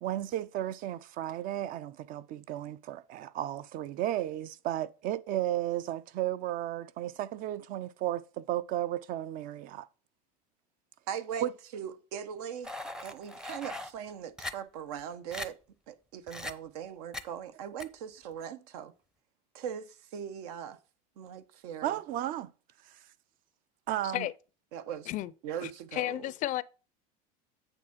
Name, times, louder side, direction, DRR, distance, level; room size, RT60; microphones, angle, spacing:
voice 1, 0.0-9.9 11.4-11.5 21.8-22.5 22.9-23.0 23.9-24.3, right 13 dB, 45° right, 0.5 m, -34 dB
voice 2, 11.1-12.7 13.0-15.6 15.9-18.9 19.5-20.8 21.2-22.0 24.7-25.1 25.4-26.3, right 8 dB, 75° right, 0.9 m, -40 dB
sound 1, 12.6-13.9 14.4-14.5 15.0-15.1 15.3-15.5 16.3-16.5 17.1-17.2 17.8-17.9, left 2 dB, 5° right, 0.6 m, -39 dB
voice 3, 25.6-26.6, left 15 dB, 40° left, 0.4 m, -33 dB
9.1 x 3.6 x 5.8 m
supercardioid pair, 120°, 20 cm